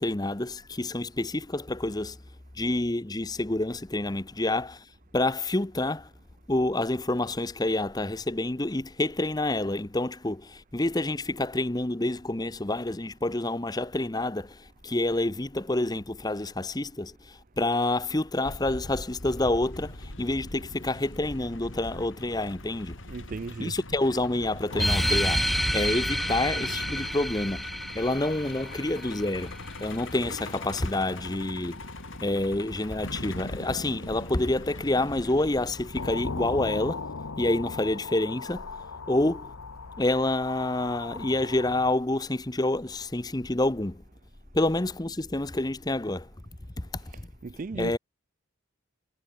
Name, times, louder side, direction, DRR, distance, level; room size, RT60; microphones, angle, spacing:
voice 1, 0.0-2.2 2.6-4.8 5.1-6.1 6.5-14.5 14.8-17.1 17.6-23.0 23.6-27.7 27.9-31.8 32.2-37.0 37.4-38.6 39.1-39.5 40.0-44.0 44.5-46.3 47.7-48.0, left 2 dB, 20° left, 0.8 m, -28 dB
Truck, 18.4-36.2, left 2 dB, 60° left, 4.7 m, -41 dB
voice 2, 23.1-23.8 47.4-48.0, right 4 dB, 40° right, 0.4 m, -35 dB
sound 1, 24.7-41.9, left 4 dB, 80° left, 1.1 m, -41 dB
sound 2, 24.8-29.8, equal, ahead, 1.0 m, -29 dB
head